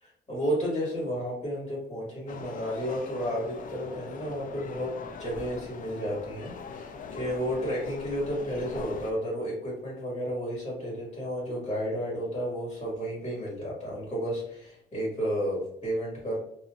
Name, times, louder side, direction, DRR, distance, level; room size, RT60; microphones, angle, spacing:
voice 1, 0.0-16.4, equal, 25° left, -5 dB, 1.4 m, -32 dB
sound 1, 2.3-9.1, left 5 dB, 45° left, 0.4 m, -42 dB
3.1 x 2.6 x 2.2 m, 0.74 s
cardioid pair, 90°, 20 cm